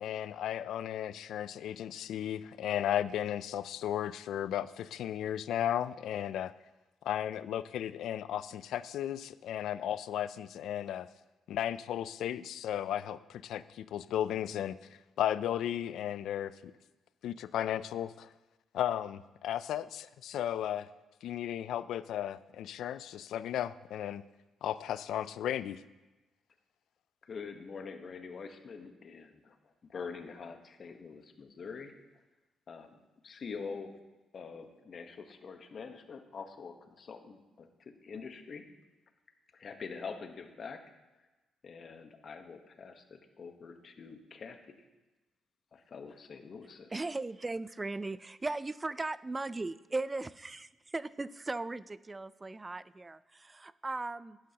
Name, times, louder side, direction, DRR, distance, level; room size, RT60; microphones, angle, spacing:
voice 1, 0.0-6.5 7.0-11.1 11.5-14.8 15.2-16.5 17.2-18.3 18.7-20.9 21.2-24.2 24.6-25.8, left 11 dB, 75° left, 16 dB, 0.4 m, -35 dB
voice 2, 27.2-29.6 29.8-31.9 32.7-32.9 33.2-33.9 34.3-38.6 39.5-40.8 41.6-44.8 45.7-46.9, left 5 dB, 50° left, 6 dB, 1.1 m, -45 dB
voice 3, 46.9-54.4, right 3 dB, 20° right, 17 dB, 0.3 m, -38 dB
11.5 x 9.8 x 2.9 m, 1.1 s
cardioid pair, 90°, 0 cm